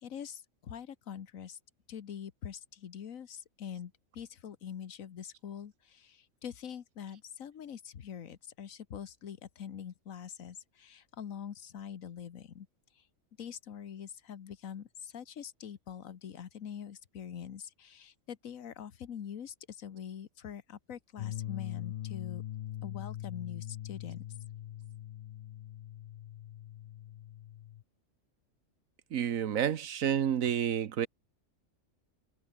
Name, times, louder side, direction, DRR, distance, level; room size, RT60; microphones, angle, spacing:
voice 1, 0.0-1.6 1.9-12.7 13.0-13.1 13.4-22.4 22.8-24.2, left 8 dB, 85° left, 1.5 m, -44 dB
sound 1, 21.2-27.8, left 12 dB, 65° left, 0.6 m, -42 dB
voice 2, 29.1-31.1, right 9 dB, 85° right, 1.4 m, -29 dB
omnidirectional pair, 1.4 m